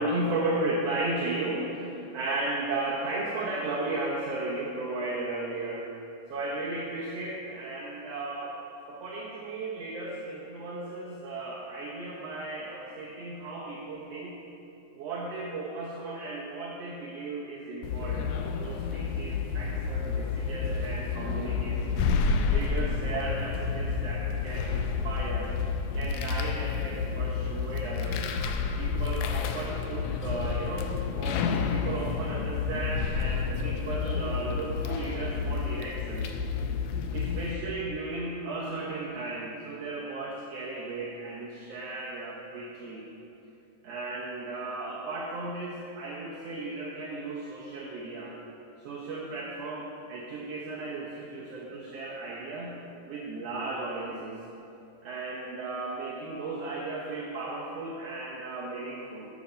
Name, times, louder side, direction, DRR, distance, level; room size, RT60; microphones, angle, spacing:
voice 1, 0.0-5.9 6.3-8.6 8.9-14.4 14.9-22.0 22.5-25.6 25.9-28.3 28.8-31.4 31.7-36.3 37.1-43.1 43.8-48.3 48.8-52.8 53.1-54.5 55.0-59.3, right 2 dB, 75° right, -4 dB, 1.5 m, -35 dB
sound 1, 17.8-37.5, left 5 dB, 80° left, 1.7 m, -30 dB
8.3 x 7.4 x 5.5 m, 2.8 s
omnidirectional pair, 3.9 m